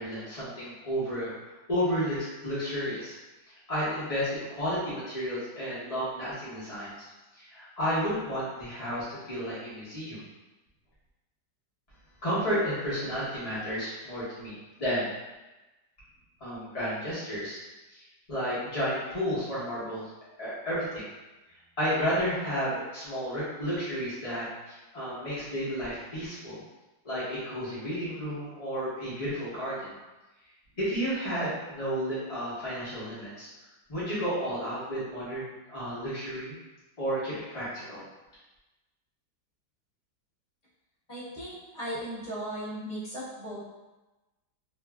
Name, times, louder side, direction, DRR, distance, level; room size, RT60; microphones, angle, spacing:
voice 1, 0.0-3.2 3.7-6.9 7.3-10.2 12.2-15.1 16.4-17.6 17.9-20.1 20.4-21.1 21.8-26.6 27.0-30.0 30.8-33.5 33.9-36.6 37.0-38.0, equal, 70° left, -11 dB, 0.3 m, -32 dB
voice 2, 41.1-43.7, equal, 25° left, -11 dB, 0.9 m, -37 dB
2.8 x 2.5 x 2.3 m, 1.1 s
omnidirectional pair, 2.0 m